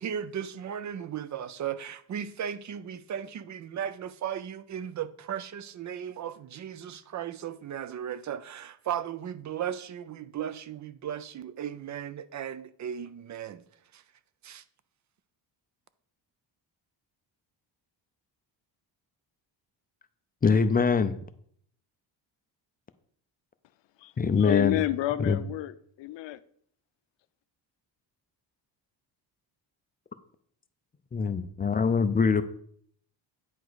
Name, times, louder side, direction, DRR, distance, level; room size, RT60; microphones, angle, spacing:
voice 1, 0.0-13.6 13.9-14.0 14.4-14.6, right 9 dB, 40° right, 0.4 m, -36 dB
voice 2, 20.4-21.2 24.2-24.8 25.2-25.4 31.1-32.4, left 5 dB, 20° left, 0.4 m, -23 dB
voice 3, 24.4-26.4, left 14 dB, 70° left, 0.6 m, -30 dB
9.2 x 4.8 x 4.0 m
cardioid pair, 125°, 45 cm